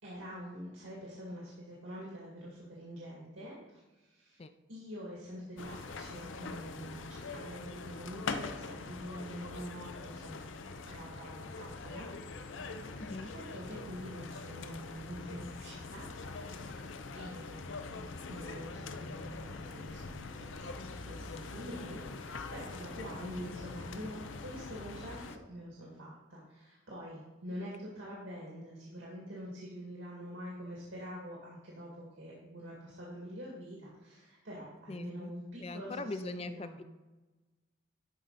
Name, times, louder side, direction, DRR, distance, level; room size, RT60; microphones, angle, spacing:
voice 1, 0.0-4.4 4.7-10.4 10.9-16.1 16.3-16.9 17.1-25.2 25.5-36.8, equal, 85° right, -5 dB, 2.2 m, -46 dB
sound 1, 5.6-25.4, left 3 dB, 80° left, 0.6 m, -43 dB
voice 2, 23.2-23.5 34.9-35.3 35.6-36.8, left 3 dB, 30° left, 11 dB, 0.4 m, -42 dB
12.0 x 5.0 x 4.1 m, 1.2 s
head